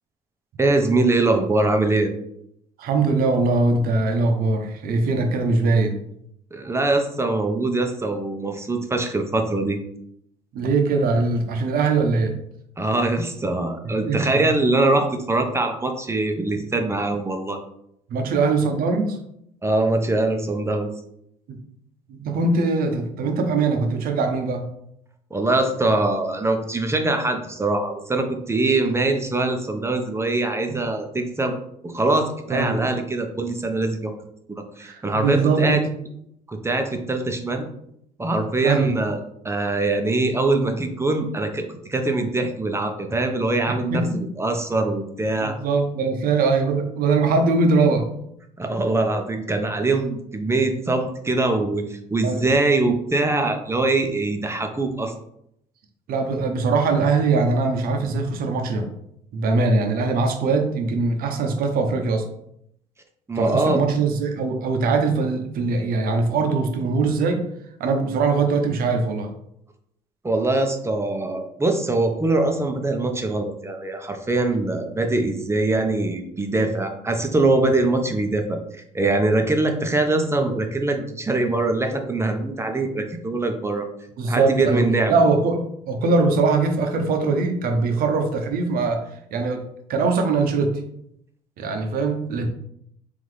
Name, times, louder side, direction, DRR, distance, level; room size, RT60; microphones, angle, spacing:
voice 1, 0.6-2.1 6.5-9.8 12.8-17.6 19.6-20.9 25.3-31.6 31.8-34.1 34.5-35.8 36.5-37.7 38.2-39.2 39.4-45.5 48.6-55.1 63.3-63.8 70.2-83.9 84.3-85.2, right 2 dB, 15° right, 4 dB, 0.8 m, -23 dB
voice 2, 2.8-6.0 10.5-12.4 14.1-14.4 18.1-19.2 22.1-24.7 30.7-30.8 32.5-32.9 34.8-35.9 38.6-38.9 43.7-44.2 45.4-48.1 52.2-52.5 56.1-58.9 59.3-62.3 63.4-67.5 67.8-69.3 84.2-84.8 85.1-89.0 89.3-89.6 89.9-90.8 91.6-92.5, right 3 dB, 65° right, 4 dB, 0.9 m, -21 dB
3.9 x 3.5 x 3.3 m, 0.74 s
supercardioid pair, 75°, 17 cm